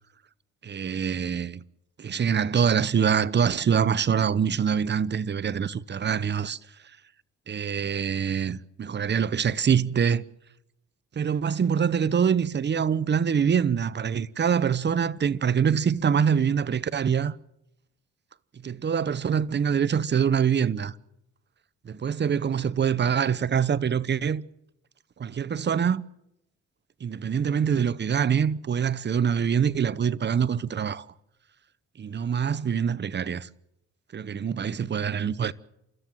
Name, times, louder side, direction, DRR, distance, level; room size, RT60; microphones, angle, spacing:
voice 1, 0.6-1.6 2.0-6.6 7.5-10.2 11.2-17.3 18.6-21.0 21.8-24.4 25.2-26.0 27.0-31.1 32.0-33.5 34.1-35.5, right 7 dB, 35° right, 0.8 m, -25 dB
29.5 x 13.5 x 7.8 m
cardioid pair, 90°, 30 cm